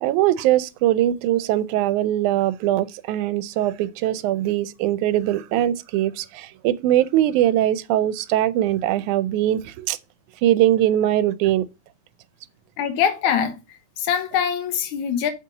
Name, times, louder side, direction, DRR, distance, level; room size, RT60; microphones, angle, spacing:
voice 1, 0.0-10.0 10.4-11.6, right 13 dB, 85° right, 2.1 m, -21 dB
voice 2, 12.8-13.5 14.0-15.3, left 8 dB, 80° left, 2.4 m, -23 dB
7.6 x 6.5 x 3.9 m
omnidirectional pair, 3.4 m